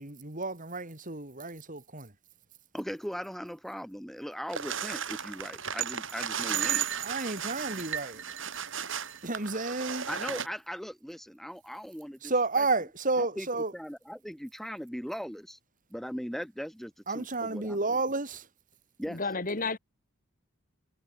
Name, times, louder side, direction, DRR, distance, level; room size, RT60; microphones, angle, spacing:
voice 1, 0.0-2.1 7.0-8.2 9.2-10.1 12.2-13.7 17.1-18.4, right 3 dB, 35° right, 3.1 m, -31 dB
voice 2, 2.7-6.8 10.1-12.9 13.2-15.6 15.9-18.0 19.0-19.2, equal, ahead, 2.1 m, -39 dB
sound 1, 4.5-10.5, right 8 dB, 60° right, 7.0 m, -34 dB
voice 3, 19.1-19.8, left 3 dB, 40° left, 2.2 m, -31 dB
head